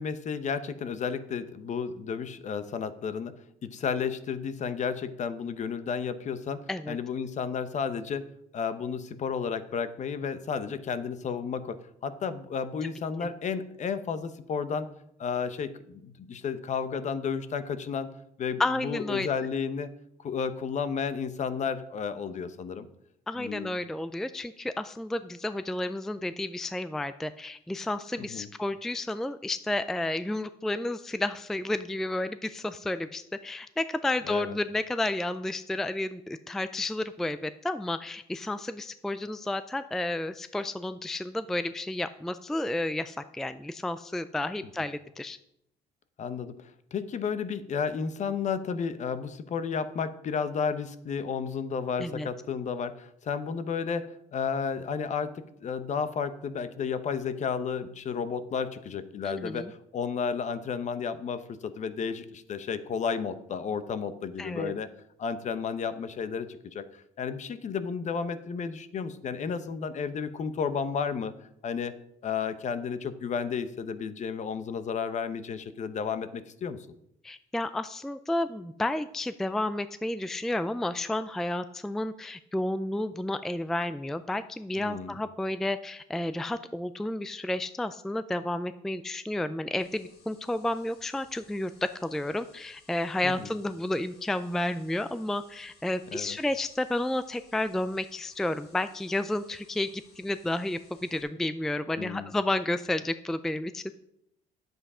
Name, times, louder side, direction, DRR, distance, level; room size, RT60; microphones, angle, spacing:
voice 1, 0.0-3.3 3.6-8.2 8.5-11.8 12.0-14.9 15.2-18.1 18.4-19.9 20.2-22.9 23.4-23.8 28.2-28.5 34.2-34.6 46.2-64.9 65.2-71.3 71.6-71.9 72.2-76.9 84.8-85.2 93.2-93.5 96.1-96.4 102.0-102.3, left 6 dB, 45° left, 12 dB, 0.9 m, -32 dB
voice 2, 18.6-19.3 23.3-45.4 52.0-52.3 59.2-59.7 64.4-64.7 77.2-91.7 92.0-99.9 100.2-103.8, left 1 dB, ahead, 12 dB, 0.4 m, -31 dB
sound 1, 89.8-101.2, left 4 dB, 70° left, 2.8 m, -61 dB
9.9 x 8.0 x 4.9 m, 0.75 s
cardioid pair, 110°, 17 cm